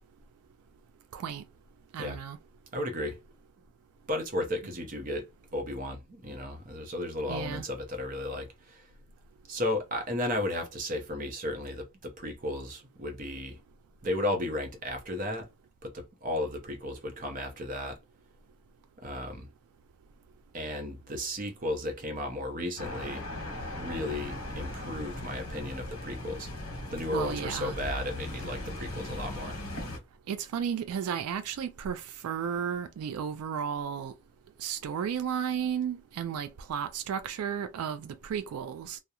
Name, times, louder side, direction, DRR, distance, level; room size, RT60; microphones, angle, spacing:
voice 1, 1.1-1.4 1.9-2.4 7.3-7.6 27.1-27.8 30.3-34.1 34.6-39.0, right 8 dB, 80° right, 0.3 m, -33 dB
voice 2, 2.7-3.2 4.1-8.9 9.5-13.6 14.0-15.5 15.8-18.0 19.0-19.5 20.5-23.2 23.7-26.5 26.9-29.6, left 1 dB, 35° right, 0.6 m, -34 dB
sound 1, 22.8-30.0, left 1 dB, 70° left, 0.9 m, -38 dB
2.3 x 2.0 x 2.8 m
head